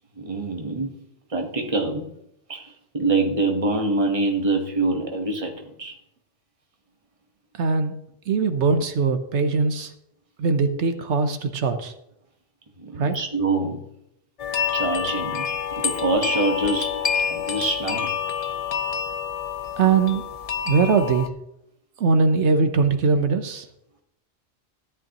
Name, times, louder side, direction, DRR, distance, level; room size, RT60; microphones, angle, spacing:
voice 1, 0.2-0.9 1.3-2.1 2.5-6.0 12.8-13.8 14.7-15.5 15.8-17.0 17.3-18.1, right 2 dB, 30° right, 3 dB, 1.3 m, -25 dB
voice 2, 7.6-7.9 8.3-9.9 10.4-11.9 13.0-13.1 19.8-20.2 20.7-21.3 22.0-23.6, right 4 dB, 75° right, 8 dB, 1.1 m, -21 dB
sound 1, 14.4-21.3, left 7 dB, 45° left, 0.5 m, -27 dB
13.5 x 11.0 x 3.0 m, 0.78 s
omnidirectional pair, 1.2 m